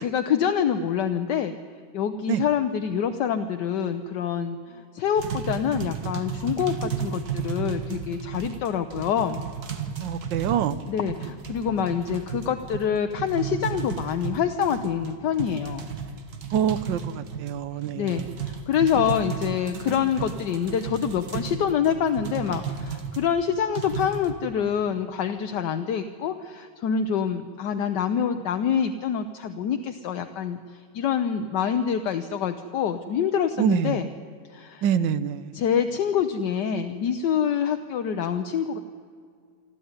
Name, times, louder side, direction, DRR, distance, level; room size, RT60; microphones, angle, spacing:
voice 1, 0.0-1.5 1.9-9.4 10.9-15.8 18.0-30.6 30.9-34.1 34.5-34.8 35.5-38.8, left 8 dB, 70° left, 7 dB, 1.5 m, -26 dB
sound 1, 5.2-23.3 23.8-24.3, right 7 dB, 60° right, 2.1 m, -34 dB
voice 2, 10.0-10.8 16.5-18.3 33.6-34.0 34.8-35.6, right 8 dB, 85° right, 16 dB, 1.5 m, -26 dB
25.5 x 13.0 x 9.6 m, 2.1 s
omnidirectional pair, 1.9 m